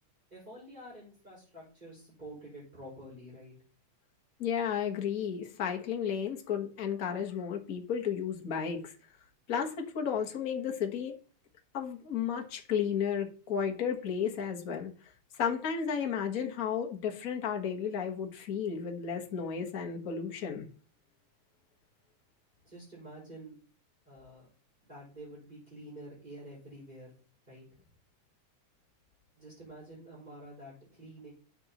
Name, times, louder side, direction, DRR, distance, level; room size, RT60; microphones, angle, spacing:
voice 1, 0.3-3.5 22.6-23.6 24.0-24.5 24.8-27.1 27.5-27.6 29.3-31.3, right 1 dB, 15° right, -6 dB, 5.9 m, -48 dB
voice 2, 4.4-8.9 9.5-11.1 11.7-14.9 15.3-20.6, left 7 dB, 45° left, 2 dB, 1.2 m, -33 dB
12.0 x 7.9 x 3.0 m, 0.41 s
omnidirectional pair, 3.4 m